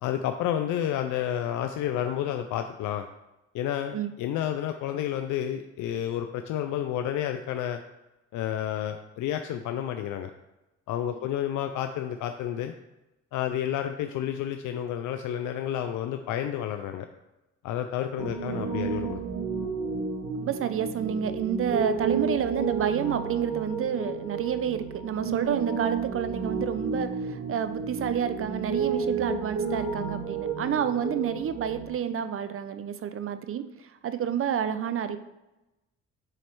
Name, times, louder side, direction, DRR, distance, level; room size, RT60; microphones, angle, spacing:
voice 1, 0.0-3.1 3.5-7.8 8.3-10.3 10.9-12.7 13.3-17.1 17.6-19.2, left 10 dB, 80° left, 7 dB, 0.5 m, -30 dB
Piano, 18.2-31.9, right 5 dB, 85° right, 1.0 m, -31 dB
voice 2, 20.3-35.2, right 8 dB, 45° right, 11 dB, 0.5 m, -29 dB
7.6 x 3.1 x 4.5 m, 0.99 s
cardioid pair, 90°, 30 cm